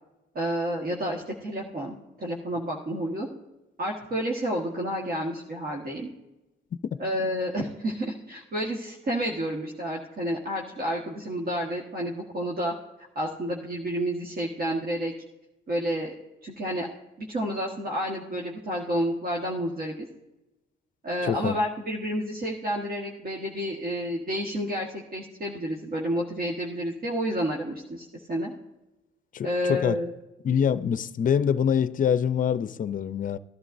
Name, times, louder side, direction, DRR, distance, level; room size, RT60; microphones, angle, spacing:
voice 1, 0.3-3.3 3.8-6.1 7.0-12.7 13.1-15.1 15.7-16.1 16.4-16.9 17.2-20.0 21.0-28.5 29.4-30.1, equal, 50° right, 1.5 m, -30 dB
voice 2, 21.2-21.6 29.3-30.0 30.4-33.4, left 8 dB, 40° left, 0.5 m, -25 dB
16.5 x 11.0 x 2.6 m
cardioid pair, 90°, 20 cm